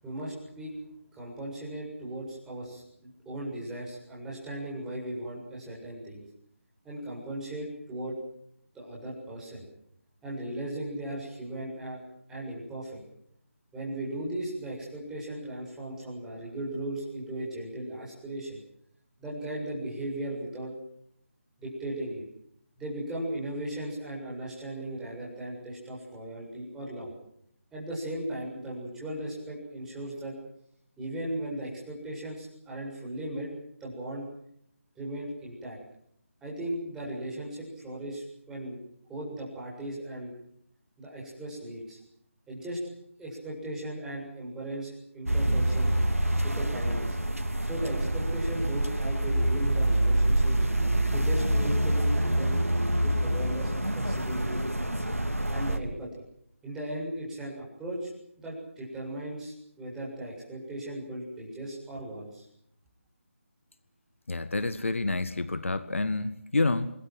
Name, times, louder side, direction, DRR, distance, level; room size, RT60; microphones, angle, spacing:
voice 1, 0.0-0.8 1.1-6.3 6.8-8.2 8.7-9.7 10.2-12.0 12.3-13.0 13.7-18.6 19.2-20.7 21.6-22.2 22.8-27.1 27.7-30.3 31.0-33.5 33.8-34.3 35.0-35.8 36.4-38.8 39.1-40.3 41.0-42.0 42.5-42.8 43.2-45.9 46.4-47.2 47.6-50.6 51.1-52.6 53.0-54.6 55.5-56.1 56.6-58.1 58.4-62.5, right 1 dB, 5° right, -4 dB, 7.3 m, -37 dB
sound 1, 45.3-55.8, right 1 dB, 85° right, 3.2 m, -26 dB
voice 2, 64.3-66.9, left 3 dB, 65° left, 12 dB, 1.6 m, -28 dB
27.0 x 21.5 x 7.7 m, 0.71 s
figure-of-eight pair, 155°, 7 cm